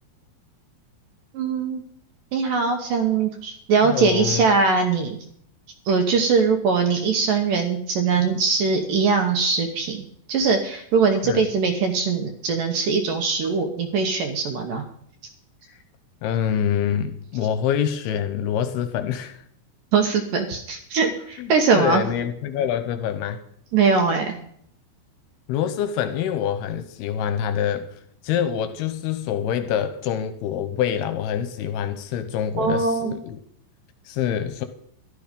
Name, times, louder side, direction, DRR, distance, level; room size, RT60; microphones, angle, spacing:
voice 1, 1.3-1.8 2.3-5.2 5.9-14.8 19.9-22.0 23.7-24.3 32.6-33.1, right 5 dB, 70° right, 2.2 m, -21 dB
voice 2, 3.8-4.4 11.2-11.4 16.2-19.4 21.4-23.4 25.5-27.9 28.2-33.4 34.1-34.7, left 9 dB, 80° left, 2.6 m, -26 dB
12.5 x 12.0 x 5.2 m
omnidirectional pair, 4.9 m